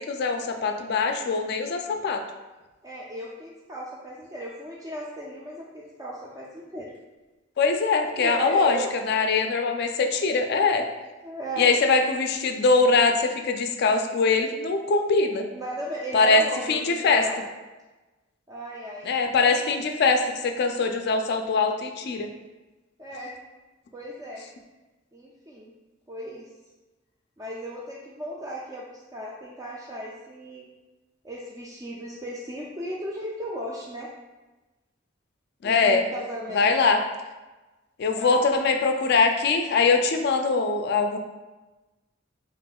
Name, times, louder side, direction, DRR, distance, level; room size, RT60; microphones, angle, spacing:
voice 1, 0.1-2.2 7.6-8.8 9.1-10.8 11.6-15.4 16.1-16.4 16.7-17.2 19.1-22.3 35.6-36.0 36.5-37.0 38.0-41.2, left 4 dB, 55° left, 5 dB, 0.4 m, -22 dB
voice 2, 2.8-6.9 8.2-8.9 11.2-11.7 15.5-17.4 18.5-19.1 23.0-23.3 23.9-24.4 25.1-25.7 26.1-26.5 27.4-30.7 31.2-34.1 35.6-36.7 38.2-38.4, right 1 dB, 20° right, -4 dB, 0.3 m, -36 dB
5.6 x 2.4 x 2.3 m, 1.2 s
head